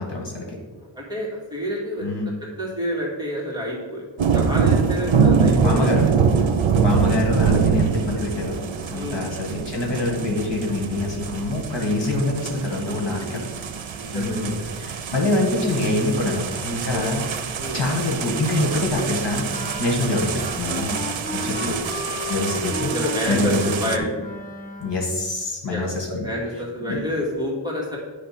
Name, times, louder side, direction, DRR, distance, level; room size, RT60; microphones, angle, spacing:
voice 1, 0.0-0.6 2.0-2.3 5.6-6.0 6.7-8.6 8.9-13.4 14.1-21.0 21.3-21.7 22.3-22.9 23.3-23.7 24.8-26.3 26.8-27.0, left 2 dB, 65° left, -2 dB, 1.8 m, -25 dB
voice 2, 0.7-2.1 2.6-4.0 4.3-6.4 8.9-9.3 12.8-13.5 14.0-14.8 16.9-17.0 17.6-17.8 20.0-20.1 21.4-21.8 22.8-24.1 25.7-25.8 26.2-28.0, equal, 10° right, -5 dB, 2.3 m, -29 dB
sound 1, 4.2-24.0, right 6 dB, 85° right, 0.7 m, -24 dB
sound 2, 19.5-25.1, left 2 dB, 15° left, 1.9 m, -34 dB
10.0 x 3.4 x 5.9 m, 1.4 s
wide cardioid pair, 85°, 46 cm